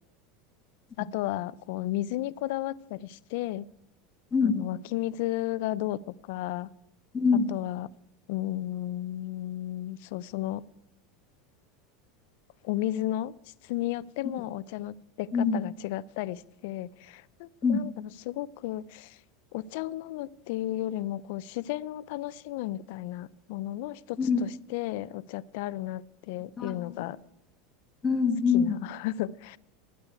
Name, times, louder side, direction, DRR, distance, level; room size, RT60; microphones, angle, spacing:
voice 1, 1.0-3.7 4.4-6.7 7.5-7.9 8.3-10.6 12.6-13.3 13.6-19.2 19.5-27.2 28.5-29.6, left 14 dB, 65° left, 0.5 m, -33 dB
voice 2, 7.1-7.5 15.3-15.6 17.6-17.8 24.2-24.4 26.6-26.9 28.0-28.8, left 5 dB, 15° left, 1.4 m, -24 dB
9.9 x 8.8 x 9.4 m
supercardioid pair, 140°, 0 cm